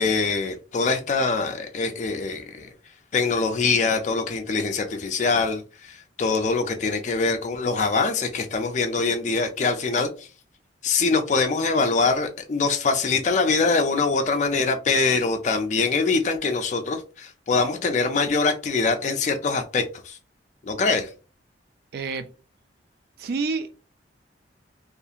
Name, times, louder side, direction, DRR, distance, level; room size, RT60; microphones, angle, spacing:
voice 1, 0.0-2.7 3.1-10.3 10.8-20.2 20.6-21.1, left 4 dB, 40° left, 0.3 m, -23 dB
voice 2, 21.9-22.3 23.2-23.9, right 4 dB, 55° right, 0.3 m, -28 dB
2.7 x 2.4 x 2.4 m
head